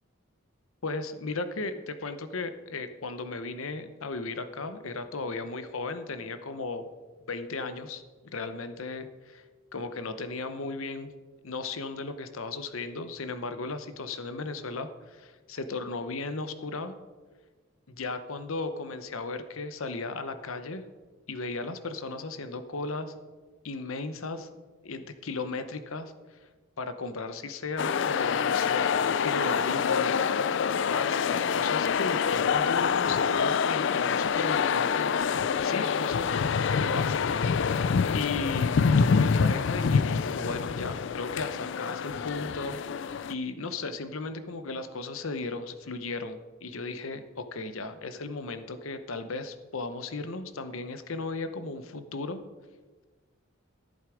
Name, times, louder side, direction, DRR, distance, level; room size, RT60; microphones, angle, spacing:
voice 1, 0.8-6.9 7.3-8.0 8.3-9.4 9.7-11.1 11.4-17.0 17.9-20.8 21.3-23.1 23.6-24.5 24.8-26.1 26.8-30.5 30.9-35.1 35.6-36.3 36.7-52.4, left 3 dB, 75° left, 10 dB, 0.8 m, -36 dB
sound 1, 27.8-43.3, left 6 dB, 55° left, 0.4 m, -26 dB
14.0 x 8.0 x 5.0 m, 1.3 s
head